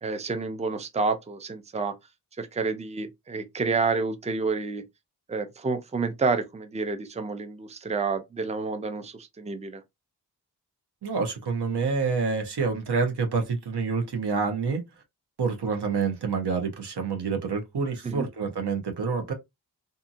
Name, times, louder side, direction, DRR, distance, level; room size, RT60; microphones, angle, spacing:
voice 1, 0.0-1.9 2.4-4.8 5.3-9.8 18.0-18.3, right 4 dB, 15° right, 0.5 m, -29 dB
voice 2, 11.0-14.8 15.4-19.3, right 5 dB, 85° right, 0.9 m, -27 dB
2.7 x 2.6 x 2.5 m
cardioid pair, 60°, 39 cm